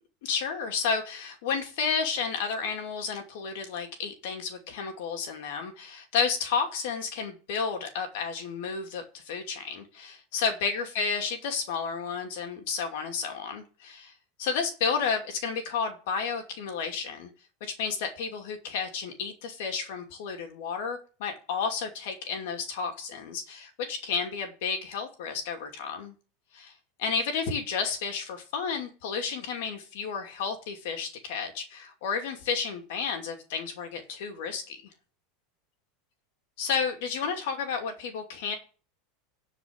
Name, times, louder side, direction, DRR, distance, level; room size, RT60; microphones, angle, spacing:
voice 1, 0.2-14.1 14.4-17.3 17.6-26.1 26.5-26.7 27.0-34.8 36.6-38.6, left 5 dB, 75° left, 4 dB, 2.5 m, -32 dB
10.5 x 4.9 x 8.2 m, 0.37 s
supercardioid pair, 140°, 0 cm